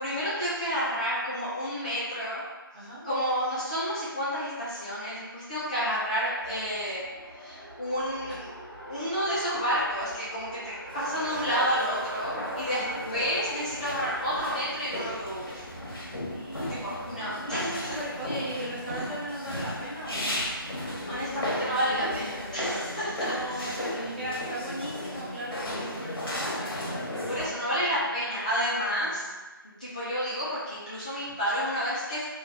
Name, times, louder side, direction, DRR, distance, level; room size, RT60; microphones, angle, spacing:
voice 1, 0.0-2.4 3.0-7.1 7.4-8.5 8.8-15.6 16.8-18.0 21.1-23.8 27.3-29.3 29.6-32.2, equal, 20° left, -11 dB, 0.4 m, -30 dB
voice 2, 2.7-3.1 8.3-8.4 12.6-13.0 16.3-17.0 17.3-20.4 23.1-28.2 28.9-29.3, right 1 dB, 25° right, -9 dB, 0.7 m, -38 dB
Race car auto racing, 6.4-16.4, equal, 90° right, 1.1 m, -41 dB
sound 1, 10.9-27.5, left 1 dB, 70° left, 0.9 m, -35 dB
2.7 x 2.3 x 2.6 m, 1.2 s
figure-of-eight pair, 160°, 12 cm